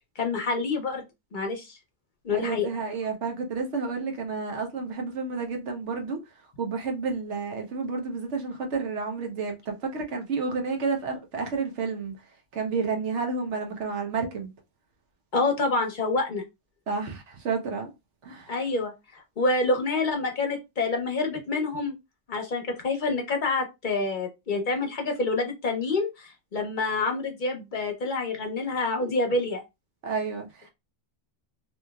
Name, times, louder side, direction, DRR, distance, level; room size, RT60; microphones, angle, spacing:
voice 1, 0.2-1.0 1.3-1.8 2.2-2.7 15.3-16.4 18.5-21.9 22.3-29.6, left 3 dB, 50° left, 0.7 m, -27 dB
voice 2, 2.3-6.2 6.6-12.2 12.5-14.5 16.9-17.9 18.2-18.5 30.0-30.7, right 4 dB, 75° right, 1.0 m, -30 dB
3.0 x 2.7 x 2.2 m
omnidirectional pair, 1.2 m